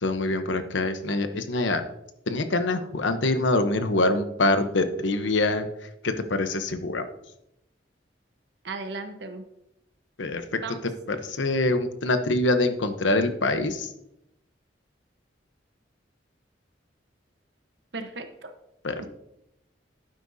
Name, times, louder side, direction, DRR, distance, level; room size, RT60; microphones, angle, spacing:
voice 1, 0.0-1.8 2.3-7.1 10.2-10.6 11.1-13.9 18.8-19.1, left 2 dB, 85° left, 8 dB, 1.0 m, -25 dB
voice 2, 8.6-9.4 10.5-10.8 17.9-18.5 19.0-19.1, right 3 dB, 65° right, 7 dB, 1.1 m, -36 dB
11.5 x 9.8 x 2.7 m, 0.84 s
head